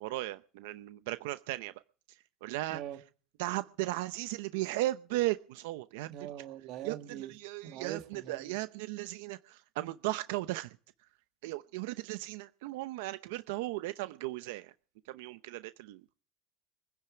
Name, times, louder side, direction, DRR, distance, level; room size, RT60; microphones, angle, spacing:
voice 1, 0.0-1.7 2.1-2.8 3.4-6.1 6.8-10.8 11.4-14.7 15.1-16.1, right 18 dB, 85° right, 0.7 m, -36 dB
voice 2, 2.7-3.0 6.1-7.3 7.6-8.6, right 11 dB, 55° right, 1.7 m, -42 dB
24.0 x 10.5 x 5.1 m
cardioid pair, 150°, 0 cm